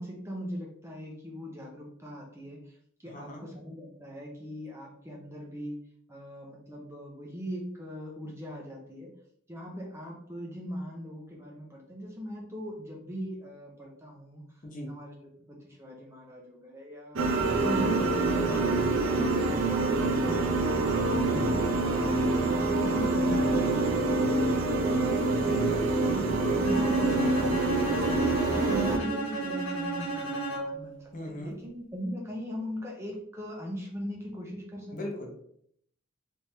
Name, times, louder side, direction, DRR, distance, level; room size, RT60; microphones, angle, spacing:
voice 1, 0.0-2.6 3.0-5.8 6.1-9.1 9.5-14.4 14.9-15.1 15.5-17.3 17.6-18.6 19.0-21.7 22.0-25.2 25.8-28.1 28.5-31.0 31.3-35.0, equal, 15° right, -1 dB, 0.6 m, -40 dB
voice 2, 3.0-3.5 14.6-14.9 21.1-21.6 25.4-26.0 27.9-28.2 31.1-31.6 34.9-35.3, left 1 dB, 40° left, 1 dB, 0.8 m, -38 dB
sound 1, 17.2-29.0, right 2 dB, 65° right, 0.6 m, -26 dB
Bowed string instrument, 26.6-30.9, right 3 dB, 75° left, 1.3 m, -33 dB
3.4 x 3.2 x 2.7 m, 0.67 s
head